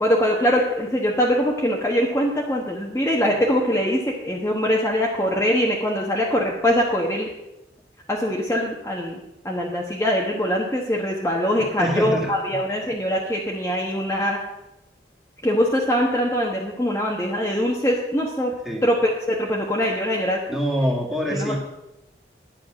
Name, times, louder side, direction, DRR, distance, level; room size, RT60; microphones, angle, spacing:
voice 1, 0.0-7.3 8.1-14.4 15.4-18.5 18.8-20.6 21.3-21.6, equal, 15° left, -2 dB, 1.2 m, -23 dB
voice 2, 11.8-12.3 18.6-18.8 20.5-21.6, equal, 5° right, -2 dB, 2.0 m, -24 dB
10.5 x 9.3 x 6.2 m, 0.91 s
head